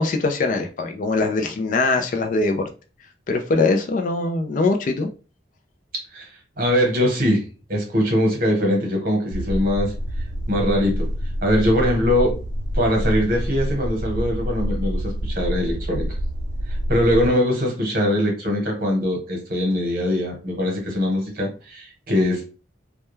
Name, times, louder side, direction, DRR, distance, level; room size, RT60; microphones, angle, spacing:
voice 1, 0.0-2.6 3.3-5.1, left 3 dB, 45° left, 5 dB, 0.3 m, -22 dB
voice 2, 6.6-9.9 10.5-11.1 11.4-12.3 12.7-16.1 16.9-22.5, left 1 dB, 50° right, 1 dB, 1.0 m, -22 dB
sound 1, 9.3-17.3, equal, 65° right, 0.4 m, -27 dB
2.2 x 2.2 x 3.0 m, 0.34 s
head